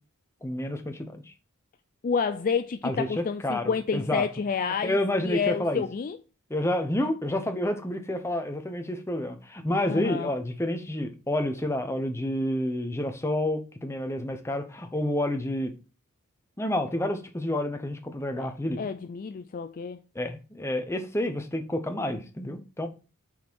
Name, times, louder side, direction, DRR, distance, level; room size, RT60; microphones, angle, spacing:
voice 1, 0.4-1.2 2.8-4.2 4.8-5.8 6.5-15.7 16.6-18.8 20.1-22.9, left 1 dB, 10° left, 0.8 m, -29 dB
voice 2, 2.0-5.0 5.2-6.2 9.9-10.3 18.4-20.0, left 6 dB, 40° left, 0.3 m, -29 dB
5.9 x 4.4 x 4.5 m
head